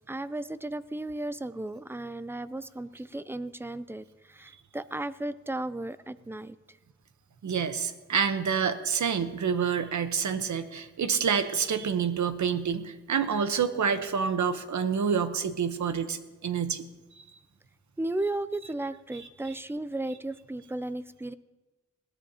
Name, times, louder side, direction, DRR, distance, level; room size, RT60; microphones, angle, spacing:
voice 1, 0.0-6.6 18.0-21.3, right 2 dB, 10° right, 15 dB, 0.4 m, -35 dB
voice 2, 7.4-16.9 19.1-19.6, right 6 dB, 80° right, 9 dB, 1.0 m, -28 dB
20.5 x 17.5 x 2.9 m, 1.1 s
wide cardioid pair, 145°, 29 cm